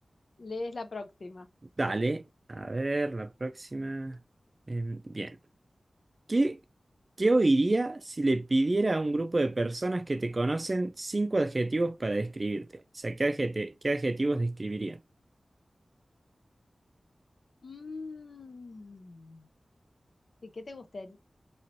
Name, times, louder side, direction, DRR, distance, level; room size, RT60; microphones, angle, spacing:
voice 1, 0.4-1.5 17.6-19.5 20.4-21.2, left 3 dB, 65° left, 0.5 m, -41 dB
voice 2, 1.8-4.2 4.7-5.4 6.3-6.6 7.2-15.0, right 2 dB, 35° right, 0.3 m, -28 dB
3.0 x 3.0 x 2.5 m
wide cardioid pair, 90°, 0 cm